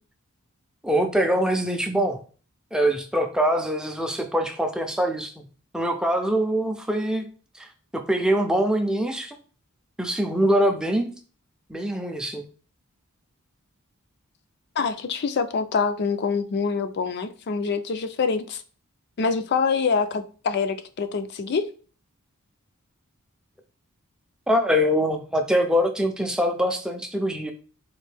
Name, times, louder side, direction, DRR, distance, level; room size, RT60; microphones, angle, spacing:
voice 1, 0.8-2.2 2.7-5.4 5.7-7.3 7.6-7.7 7.9-9.4 10.0-11.1 11.7-12.5 24.5-27.5, equal, 5° right, 0.4 m, -23 dB
voice 2, 14.8-18.6 19.2-21.7, left 5 dB, 50° left, 0.4 m, -25 dB
4.2 x 2.6 x 3.3 m
head